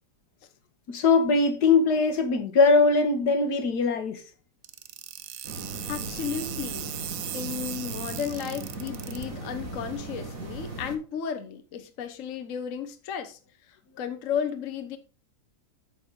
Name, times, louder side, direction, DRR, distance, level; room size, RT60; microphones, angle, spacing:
voice 1, 0.9-4.2, left 4 dB, 70° left, 1.8 m, -21 dB
sound 1, 4.6-9.2, right 11 dB, 70° right, 1.2 m, -38 dB
sound 2, 5.4-11.0, right 2 dB, 50° right, 2.3 m, -38 dB
voice 2, 5.9-6.9 7.3-13.4 13.7-15.0, left 7 dB, 55° left, 1.2 m, -34 dB
9.1 x 6.9 x 3.8 m
omnidirectional pair, 1.8 m